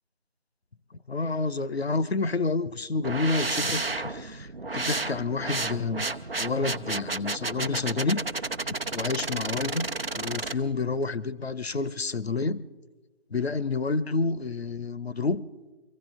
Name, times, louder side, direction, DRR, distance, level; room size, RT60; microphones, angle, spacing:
voice 1, 1.1-6.1 6.4-8.2 8.9-9.9 10.1-12.6 13.3-15.4, left 3 dB, 75° left, 0.8 m, -29 dB
sound 1, 3.0-10.5, right 3 dB, 65° right, 0.9 m, -32 dB
25.0 x 15.5 x 3.7 m
figure-of-eight pair, 170°, 32 cm